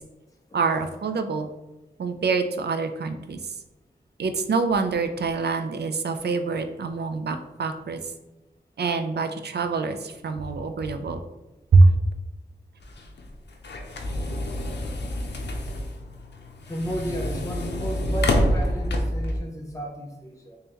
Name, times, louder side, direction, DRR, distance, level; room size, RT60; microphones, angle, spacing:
voice 1, 0.5-1.5 2.0-3.4 4.2-8.0 8.8-11.2 11.7-11.9, right 3 dB, 70° right, 7 dB, 0.4 m, -24 dB
sound 1, 12.8-19.4, left 1 dB, 80° left, 0.5 m, -28 dB
voice 2, 16.7-20.6, right 1 dB, 20° left, 0 dB, 0.6 m, -33 dB
3.6 x 3.2 x 2.9 m, 1.0 s
wide cardioid pair, 75°, 17 cm